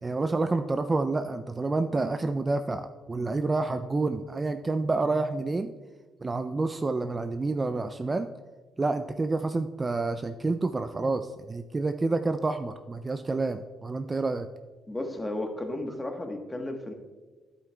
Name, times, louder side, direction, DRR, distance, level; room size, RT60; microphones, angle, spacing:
voice 1, 0.0-5.7 6.2-8.3 8.8-14.5, right 3 dB, 25° right, 8 dB, 0.3 m, -28 dB
voice 2, 14.9-16.9, left 1 dB, 15° left, 4 dB, 1.2 m, -34 dB
10.5 x 8.3 x 2.3 m, 1.3 s
cardioid pair, 90°, 0 cm